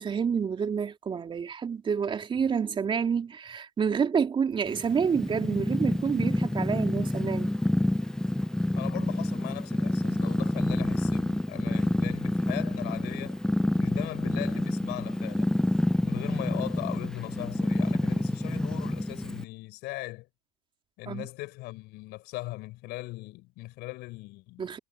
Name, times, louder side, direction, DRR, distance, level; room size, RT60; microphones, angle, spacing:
voice 1, 0.0-7.5 21.1-21.3 24.6-24.8, right 6 dB, 25° right, 3.4 m, -28 dB
Purr, 4.7-19.4, left 1 dB, 5° left, 0.6 m, -28 dB
voice 2, 8.7-13.4 13.8-15.6 16.0-20.3 21.0-24.7, left 20 dB, 55° left, 5.2 m, -39 dB
hypercardioid pair, 105°, 20 cm